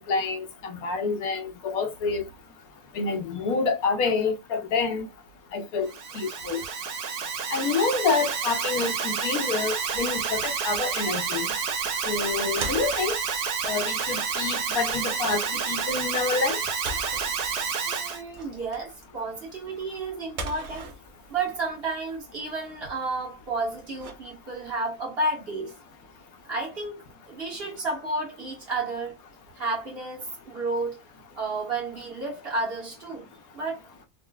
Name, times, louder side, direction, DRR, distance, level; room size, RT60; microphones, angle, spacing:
voice 1, 0.0-2.2 2.9-5.1 5.5-6.6 7.5-11.5 12.1-13.2 13.6-16.6, left 4 dB, 75° left, 1.1 m, -28 dB
Alarm, 5.8-18.2, right 6 dB, 80° right, 1.2 m, -29 dB
sound 1, 9.7-24.7, right 2 dB, 60° right, 0.8 m, -43 dB
voice 2, 17.8-20.9 21.3-25.8 26.5-29.2 29.5-31.0 31.4-33.3 33.5-33.8, right 3 dB, 40° right, 1.4 m, -31 dB
3.7 x 2.4 x 2.2 m
omnidirectional pair, 1.6 m